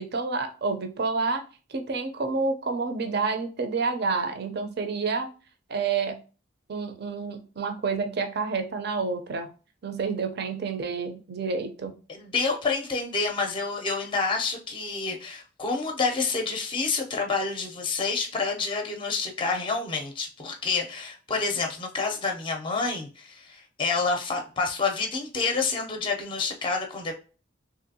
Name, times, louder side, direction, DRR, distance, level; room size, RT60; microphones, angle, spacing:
voice 1, 0.0-1.4 1.7-5.3 5.7-6.2 6.7-9.5 9.8-11.9, right 4 dB, 60° right, 6 dB, 0.5 m, -29 dB
voice 2, 12.1-27.2, left 4 dB, 25° left, 3 dB, 0.5 m, -28 dB
3.3 x 2.6 x 2.7 m, 0.35 s
head